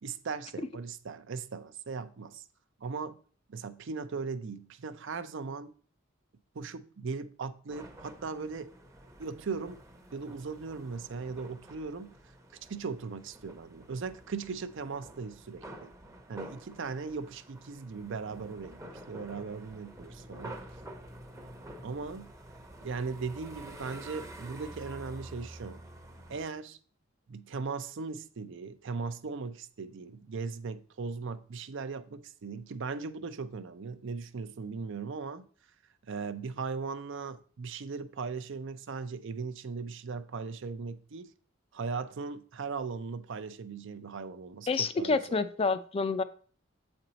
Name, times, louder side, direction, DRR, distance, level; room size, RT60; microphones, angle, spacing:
voice 1, 0.0-2.4 2.8-3.2 3.5-5.7 6.5-8.7 9.2-9.8 10.1-12.2 12.7-15.9 16.3-20.6 21.8-22.3 22.8-25.8 26.3-26.8 27.3-35.4 36.1-41.3 41.7-45.4, right 4 dB, 60° right, 0.5 m, -38 dB
sound 1, 7.7-26.5, right 1 dB, 15° right, 0.7 m, -49 dB
voice 2, 44.7-46.2, left 4 dB, 30° left, 0.4 m, -28 dB
7.7 x 4.4 x 4.0 m
head